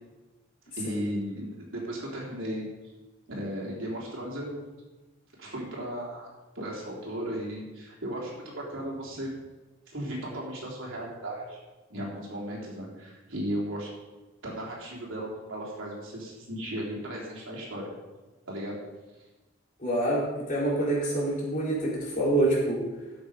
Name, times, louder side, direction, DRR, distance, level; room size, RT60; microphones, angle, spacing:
voice 1, 0.8-2.7 3.3-4.6 5.4-6.3 6.5-9.3 9.9-11.6 11.9-13.9 14.4-17.9 18.4-18.8, equal, 80° right, -3 dB, 3.4 m, -35 dB
voice 2, 19.8-22.8, right 1 dB, 40° left, -6 dB, 3.9 m, -26 dB
12.0 x 7.3 x 5.1 m, 1.1 s
head